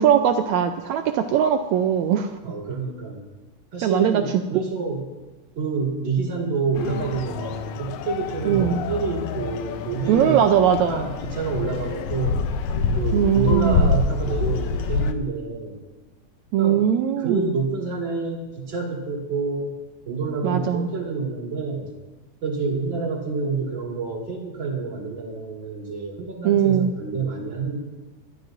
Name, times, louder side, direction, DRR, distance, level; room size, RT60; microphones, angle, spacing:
voice 1, 0.0-2.3 3.8-4.2 8.4-8.8 10.1-11.1 13.1-13.9 16.5-17.5 20.4-20.9 26.4-26.9, right 9 dB, 85° right, 6 dB, 1.6 m, -20 dB
voice 2, 2.4-3.3 3.7-5.1 5.6-10.4 10.8-12.4 12.9-15.8 16.6-16.8 17.2-19.7 20.1-21.9 22.4-27.8, right 4 dB, 40° right, -1 dB, 2.4 m, -28 dB
sound 1, 6.8-15.1, left 4 dB, 75° left, 1.9 m, -26 dB
21.0 x 12.5 x 2.6 m, 1.1 s
omnidirectional pair, 3.8 m